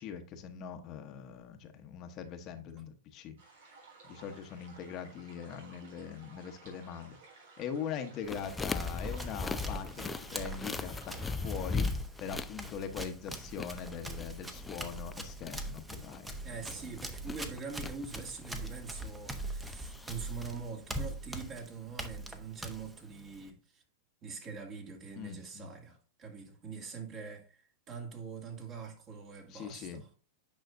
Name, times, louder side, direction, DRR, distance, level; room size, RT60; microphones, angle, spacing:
voice 1, 0.0-3.4 4.0-7.2 7.6-11.9 12.2-16.3 25.2-25.7 29.5-30.0, left 7 dB, 40° left, 1.0 m, -42 dB
sound 1, 3.4-11.9, right 4 dB, 75° right, 4.0 m, -56 dB
Run, 8.2-23.5, right 1 dB, 10° right, 1.0 m, -43 dB
sound 2, 8.3-20.5, left 4 dB, 10° left, 0.4 m, -40 dB
voice 2, 16.4-23.8 24.2-30.1, right 5 dB, 35° right, 2.3 m, -44 dB
9.2 x 5.6 x 2.6 m
hypercardioid pair, 125°, 0 cm